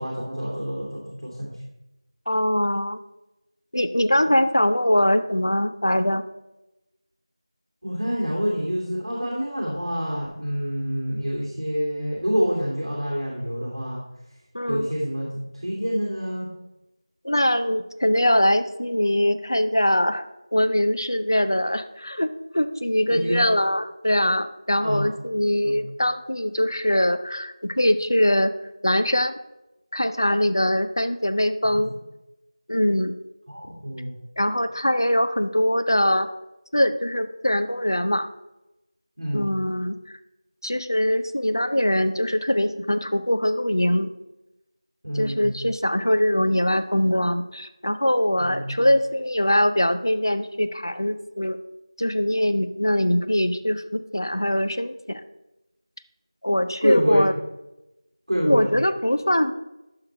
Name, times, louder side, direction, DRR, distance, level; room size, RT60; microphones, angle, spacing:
voice 1, 0.0-1.5 4.2-4.3 7.8-14.0 14.7-16.5 23.1-23.4 24.8-25.1 25.6-25.8 31.6-31.8 33.5-34.2 39.2-39.5 45.0-45.6 48.4-48.8 56.8-57.2 58.3-58.7, equal, 55° right, -5 dB, 2.6 m, -27 dB
voice 2, 2.3-3.0 3.7-6.2 14.5-14.9 17.2-20.2 20.5-22.3 22.5-28.5 28.8-29.3 29.9-31.9 32.7-33.2 34.4-36.3 36.7-38.3 39.3-40.2 40.6-44.1 45.1-51.6 52.0-55.2 56.4-57.3 58.4-59.5, left 1 dB, 45° left, 10 dB, 0.6 m, -22 dB
13.0 x 5.8 x 3.3 m, 0.96 s
figure-of-eight pair, 180°, 3 cm